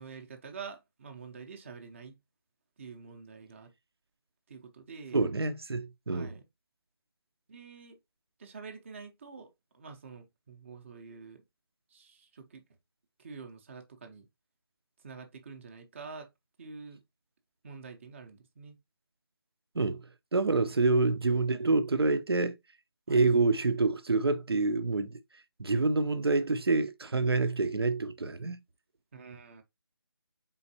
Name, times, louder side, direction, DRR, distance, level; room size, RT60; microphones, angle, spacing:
voice 1, 0.0-2.2 2.8-3.7 4.5-5.2 6.1-6.4 7.5-8.0 8.4-11.4 11.9-12.6 13.2-14.3 15.0-16.3 16.6-17.0 17.6-18.8 20.8-21.1 23.1-23.3 29.1-29.6, right 5 dB, 30° right, 0.7 m, -47 dB
voice 2, 5.1-6.4 19.7-22.6 23.1-25.2 25.6-28.6, right 3 dB, 75° right, 0.7 m, -27 dB
4.3 x 3.9 x 2.8 m
figure-of-eight pair, 160°, 13 cm